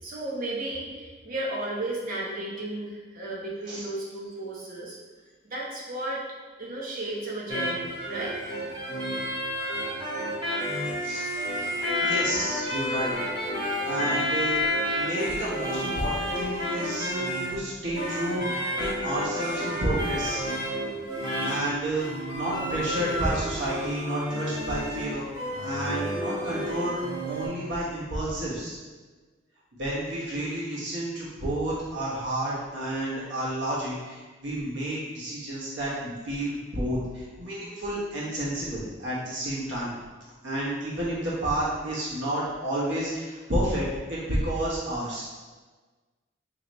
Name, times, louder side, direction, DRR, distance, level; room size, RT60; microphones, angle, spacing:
voice 1, 0.0-5.0 5.5-6.2 6.6-8.4 11.6-11.7, right 1 dB, 50° right, -5 dB, 0.9 m, -34 dB
sound 1, 7.5-27.5, equal, 25° right, 1.1 m, -30 dB
voice 2, 12.0-13.1 13.8-14.6 15.0-20.5 21.4-28.7 29.8-39.9 40.4-45.2, right 1 dB, 70° right, -7 dB, 1.2 m, -30 dB
3.9 x 3.0 x 3.0 m, 1.4 s
head